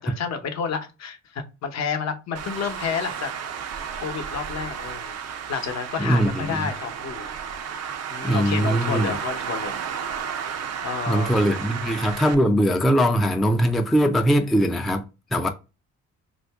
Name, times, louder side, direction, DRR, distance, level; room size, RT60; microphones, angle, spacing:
voice 1, 0.0-3.3 3.6-5.2 5.5-7.3 8.1-9.8 10.8-11.5, left 6 dB, 60° left, 0.8 m, -30 dB
Traffic noise roadway noise, 2.4-12.4, right 7 dB, 55° right, 0.5 m, -33 dB
voice 2, 6.0-6.7 8.2-9.1 11.1-15.5, equal, ahead, 0.3 m, -21 dB
2.7 x 2.5 x 3.4 m
cardioid pair, 90°, 30 cm